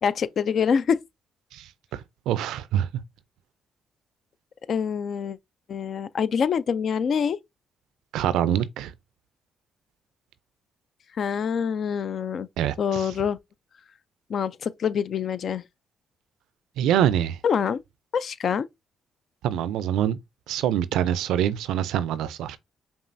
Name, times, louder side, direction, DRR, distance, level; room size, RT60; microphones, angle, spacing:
voice 1, 0.0-1.0 4.7-5.4 5.7-7.4 11.2-12.5 12.8-13.4 14.3-15.6 17.4-17.8 18.1-18.7, left 7 dB, 60° left, 0.3 m, -25 dB
voice 2, 1.5-2.9 8.1-8.9 12.6-13.1 16.8-17.4 19.4-20.2 20.5-22.6, right 10 dB, 80° right, 0.4 m, -25 dB
5.3 x 2.4 x 2.6 m
supercardioid pair, 65°, 0 cm